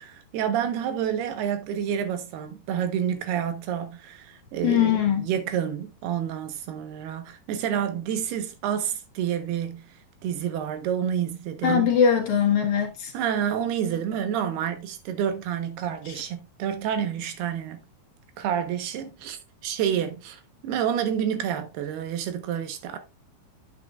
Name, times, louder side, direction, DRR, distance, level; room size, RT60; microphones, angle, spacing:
voice 1, 0.0-9.9 10.2-11.9 13.1-17.8 18.4-19.4 19.6-23.0, right 9 dB, 85° right, 3.2 m, -29 dB
voice 2, 4.6-5.3 11.6-13.1, left 8 dB, 60° left, 2.5 m, -21 dB
9.2 x 8.4 x 2.4 m
omnidirectional pair, 4.4 m